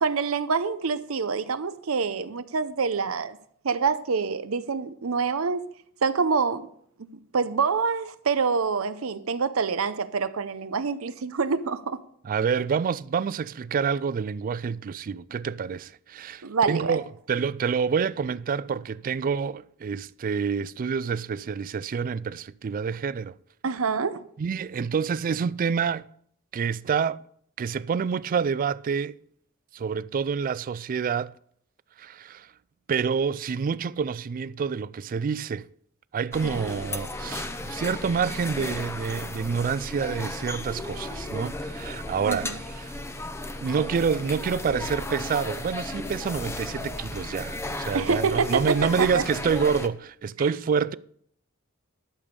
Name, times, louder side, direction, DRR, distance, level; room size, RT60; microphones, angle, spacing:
voice 1, 0.0-3.4 3.6-5.6 6.0-6.7 7.0-12.0 16.4-17.0 23.6-24.2 36.6-36.7 42.2-42.6 47.9-49.2 50.4-50.5, right 5 dB, 85° right, 0.7 m, -26 dB
voice 2, 12.2-17.0 17.3-23.3 24.4-26.0 26.5-27.2 27.6-29.1 29.7-31.3 32.0-32.5 32.9-35.7 36.1-42.5 42.8-42.9 43.6-50.9, right 6 dB, 40° right, 0.3 m, -27 dB
sound 1, 36.3-49.9, left 2 dB, 10° left, 0.6 m, -35 dB
12.0 x 7.0 x 5.2 m
head